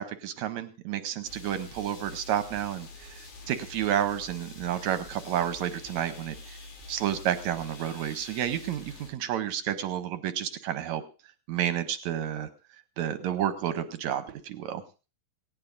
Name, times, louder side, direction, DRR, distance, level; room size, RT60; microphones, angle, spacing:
voice 1, 0.0-6.6 6.9-11.0 11.5-12.5 13.0-14.8, right 10 dB, 70° right, 10 dB, 1.9 m, -30 dB
sound 1, 1.2-9.1, left 2 dB, 85° left, 4.7 m, -46 dB
18.0 x 17.5 x 2.6 m, 0.33 s
omnidirectional pair, 3.9 m